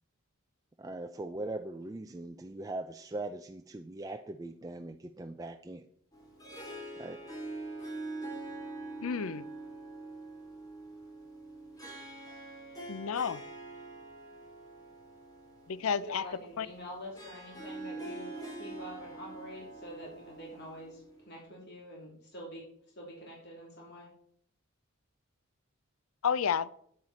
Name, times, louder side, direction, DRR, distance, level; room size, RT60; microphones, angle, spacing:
voice 1, 0.8-5.8 6.9-7.2, right 2 dB, 15° right, 6 dB, 0.3 m, -40 dB
Harp, 6.1-21.4, right 2 dB, 15° left, 2.5 m, -45 dB
voice 2, 9.0-9.4 12.9-13.4 15.7-16.3 16.6-16.7 26.2-26.7, left 6 dB, 70° left, 18 dB, 0.5 m, -31 dB
voice 3, 16.0-22.6 22.9-24.1, equal, 50° left, -2 dB, 3.1 m, -46 dB
9.7 x 8.9 x 4.2 m, 0.65 s
head